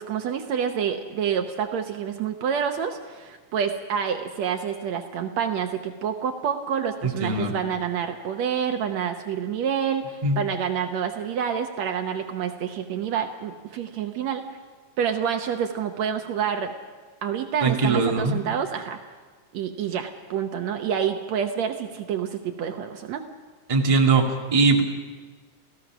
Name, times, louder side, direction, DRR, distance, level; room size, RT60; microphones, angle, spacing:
voice 1, 0.0-14.4 15.0-16.7 17.2-19.0 19.5-23.2, right 8 dB, 65° right, 5 dB, 2.1 m, -28 dB
voice 2, 7.0-7.5 10.2-10.4 17.6-18.4 23.7-24.8, right 3 dB, 15° right, 0 dB, 1.5 m, -21 dB
28.5 x 16.0 x 6.1 m, 1.4 s
omnidirectional pair, 3.6 m